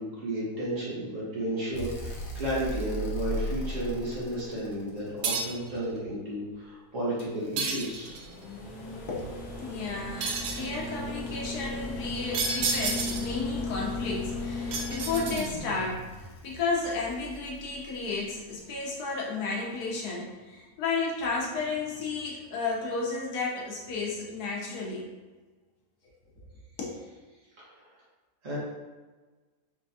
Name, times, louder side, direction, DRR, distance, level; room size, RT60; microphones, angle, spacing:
voice 1, 0.0-8.2 27.6-27.8 28.4-28.6, right 1 dB, 55° right, -8 dB, 1.8 m, -33 dB
sound 1, 1.7-5.9 7.2-18.4 19.9-20.0, left 1 dB, 65° left, 1.2 m, -37 dB
sound 2, 5.2-5.7 7.6-8.3 10.2-10.7 12.3-13.4 14.7-15.8, right 4 dB, 80° right, 1.1 m, -31 dB
voice 2, 9.1-25.1 26.8-27.0, left 4 dB, 85° left, -3 dB, 1.4 m, -33 dB
4.6 x 3.4 x 2.7 m, 1.3 s
omnidirectional pair, 1.6 m